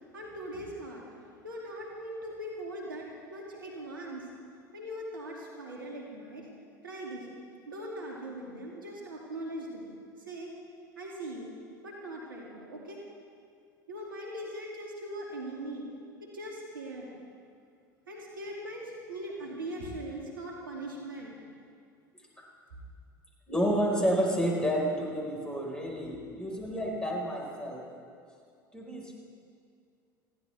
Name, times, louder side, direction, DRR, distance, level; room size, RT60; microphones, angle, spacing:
voice 1, 0.1-1.0 1.4-4.3 4.7-6.5 6.8-7.3 7.7-9.9 10.3-10.5 11.0-11.5 11.8-13.0 13.9-15.9 16.3-17.1 18.1-21.3, right 1 dB, 85° right, -2 dB, 2.5 m, -40 dB
voice 2, 23.5-27.9 28.7-29.2, equal, 10° left, -2 dB, 4.8 m, -30 dB
20.0 x 15.5 x 3.5 m, 2.3 s
hypercardioid pair, 75°, 11 cm